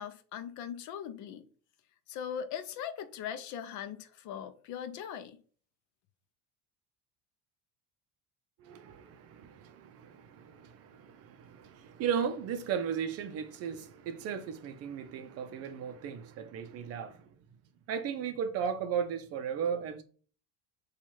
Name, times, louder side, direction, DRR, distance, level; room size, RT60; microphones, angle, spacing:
voice 1, 0.0-1.4 2.1-5.4, left 8 dB, 55° left, 0.5 m, -40 dB
voice 2, 8.6-17.3 17.9-20.0, right 7 dB, 45° right, 0.5 m, -36 dB
3.0 x 2.4 x 4.1 m
cardioid pair, 145°, 36 cm